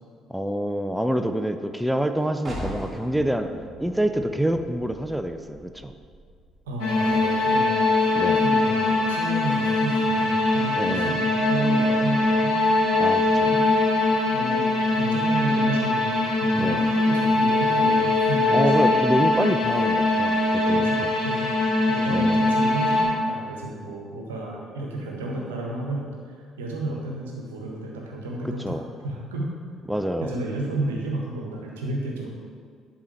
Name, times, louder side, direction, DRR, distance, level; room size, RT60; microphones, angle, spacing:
voice 1, 0.3-3.5 3.8-5.9 8.1-8.5 10.8-11.2 13.0-13.6 16.6-16.9 18.5-21.1 22.1-22.5 28.4-28.8 29.9-30.3, right 1 dB, 5° right, 7 dB, 0.4 m, -27 dB
sound 1, 2.4-8.0, equal, 30° right, 1.5 m, -40 dB
voice 2, 6.7-12.6 13.3-13.8 14.3-19.0 20.7-21.6 21.8-28.8 29.0-29.5 30.2-32.3, right 2 dB, 75° right, -1 dB, 1.0 m, -32 dB
sound 2, 6.8-23.0, left 2 dB, 65° left, 1.4 m, -22 dB
10.5 x 4.2 x 3.2 m, 2.1 s
figure-of-eight pair, 45°, 0 cm